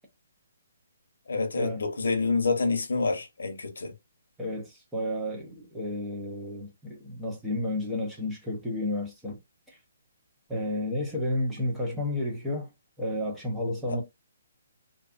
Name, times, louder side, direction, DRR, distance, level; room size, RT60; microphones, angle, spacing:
voice 1, 1.3-3.9 13.9-14.0, left 3 dB, 85° left, 0.7 m, -27 dB
voice 2, 4.4-9.4 9.7-9.8 10.5-12.7 13.0-14.0, left 1 dB, 5° right, 0.6 m, -31 dB
2.6 x 2.2 x 2.4 m
hypercardioid pair, 175°, 0 cm